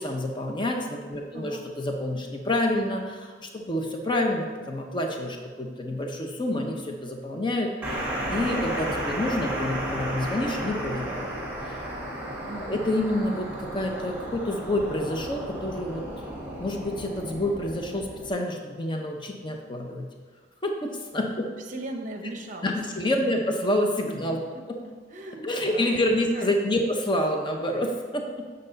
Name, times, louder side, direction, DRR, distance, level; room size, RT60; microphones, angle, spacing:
voice 1, 0.0-11.2 11.6-11.8 12.5-16.0 16.6-20.1 20.6-21.5 22.6-24.4 25.4-28.4, left 1 dB, 25° left, 2 dB, 0.7 m, -28 dB
voice 2, 1.3-1.7 12.4-12.9 21.6-23.4 24.3-26.1 26.3-26.6, right 2 dB, 40° right, 4 dB, 0.8 m, -40 dB
sound 1, 7.8-18.3, right 1 dB, 10° right, 1.9 m, -33 dB
8.0 x 6.6 x 4.0 m, 1.5 s
head